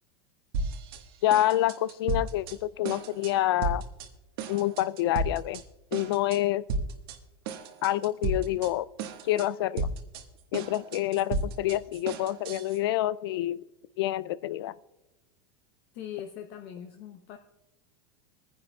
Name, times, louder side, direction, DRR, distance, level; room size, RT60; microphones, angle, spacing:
sound 1, 0.5-1.0 1.3-2.6 2.8-3.3 3.6-4.1 4.4-5.6 5.9-6.4 6.7-7.2 7.5-8.7 9.0-9.5 9.8-12.8, right 3 dB, 70° right, 1.3 m, -33 dB
voice 1, 1.2-3.8 4.5-5.6 5.9-6.6 7.8-8.9 9.2-9.9 10.5-13.6 14.0-14.7, left 14 dB, 75° left, 20 dB, 0.4 m, -27 dB
voice 2, 15.9-17.4, left 10 dB, 50° left, 5 dB, 0.8 m, -41 dB
23.5 x 10.0 x 2.3 m, 1.0 s
supercardioid pair, 150°, 13 cm